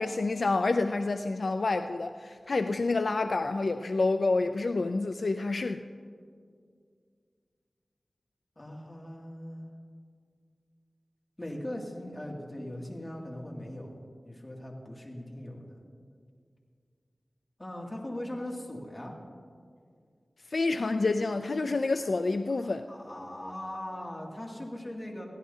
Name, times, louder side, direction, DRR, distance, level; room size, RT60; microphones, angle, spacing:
voice 1, 0.0-5.8 20.5-22.9, left 3 dB, 70° left, 7 dB, 0.4 m, -28 dB
voice 2, 8.6-9.6 11.4-14.0 14.2-15.8 17.6-19.1 22.6-25.2, left 1 dB, 30° left, -1 dB, 2.3 m, -40 dB
21.5 x 16.0 x 2.8 m, 2.1 s
wide cardioid pair, 80°, 0 cm